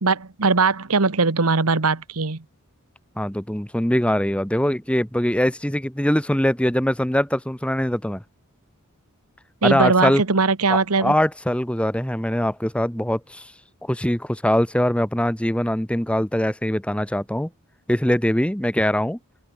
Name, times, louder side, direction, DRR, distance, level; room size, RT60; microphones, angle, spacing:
voice 1, 0.0-2.4 9.6-11.1, right 4 dB, 90° right, 1.4 m, -20 dB
voice 2, 3.2-8.2 9.6-10.2 10.7-13.5 13.8-17.5 17.9-19.2, equal, 5° left, 1.2 m, -22 dB
open air
head